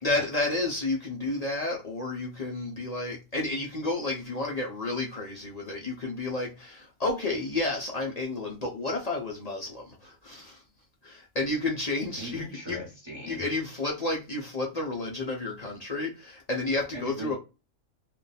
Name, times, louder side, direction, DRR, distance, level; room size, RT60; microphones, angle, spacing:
voice 1, 0.0-10.6 11.0-12.8 13.3-17.4, left 2 dB, 50° left, 0.5 m, -31 dB
voice 2, 12.2-13.5 16.9-17.4, right 1 dB, 25° right, 0.8 m, -39 dB
2.5 x 2.2 x 3.9 m
omnidirectional pair, 1.4 m